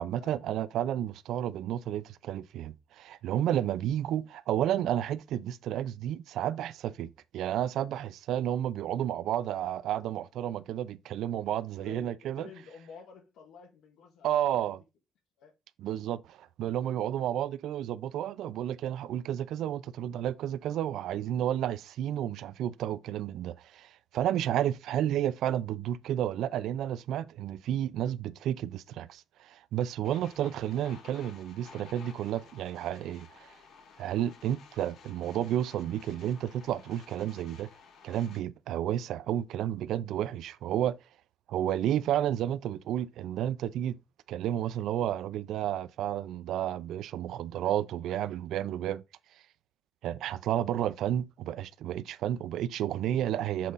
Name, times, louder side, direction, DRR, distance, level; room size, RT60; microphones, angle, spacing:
voice 1, 0.0-12.5 14.2-14.8 15.8-33.5 34.0-37.7 38.0-40.9 41.5-43.9 44.3-49.0 50.0-53.7, right 11 dB, 75° right, 0.5 m, -31 dB
voice 2, 11.8-14.7 15.4-15.5 34.4-34.6, left 6 dB, 90° left, 1.5 m, -52 dB
sound 1, 30.0-38.4, left 5 dB, 60° left, 1.2 m, -54 dB
7.4 x 3.7 x 4.0 m
cardioid pair, 170°, 0 cm